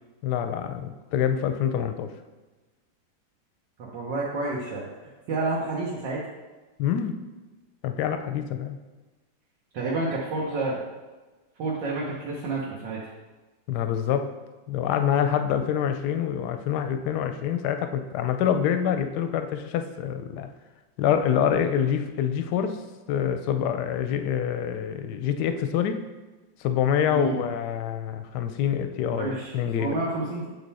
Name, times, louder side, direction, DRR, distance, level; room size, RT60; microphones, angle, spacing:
voice 1, 0.2-2.1 6.8-7.2 7.8-8.8 13.7-14.3 14.7-20.5 21.0-22.8 23.1-26.0 26.6-30.0, left 9 dB, 70° left, 8 dB, 1.1 m, -26 dB
voice 2, 3.8-4.9 5.3-6.2 9.7-10.8 11.6-13.0 27.1-27.4 29.1-29.5 29.8-30.5, right 2 dB, 70° right, -5 dB, 1.7 m, -29 dB
8.3 x 3.9 x 4.1 m, 1.2 s
omnidirectional pair, 2.0 m